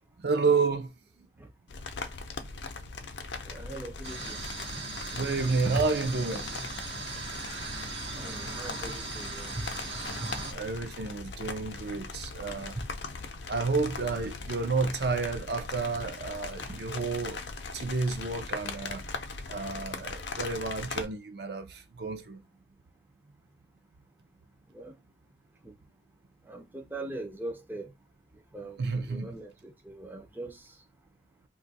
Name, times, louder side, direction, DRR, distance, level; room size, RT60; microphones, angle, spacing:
voice 1, 0.2-0.9 5.1-6.4 10.5-12.8 13.5-17.4 17.7-19.0 19.5-22.4 28.8-29.3, right 4 dB, 65° right, 0.5 m, -30 dB
sound 1, 1.7-21.1, left 4 dB, 80° left, 0.5 m, -40 dB
voice 2, 3.5-4.4 5.8-5.9 8.2-9.6 12.8-12.9 16.6-16.8 24.7-24.9 25.6-25.7 26.5-27.9 28.5-30.6, right 2 dB, 10° right, 0.4 m, -40 dB
sound 2, 4.0-10.5, right 3 dB, 85° right, 0.9 m, -38 dB
2.6 x 2.3 x 3.9 m
head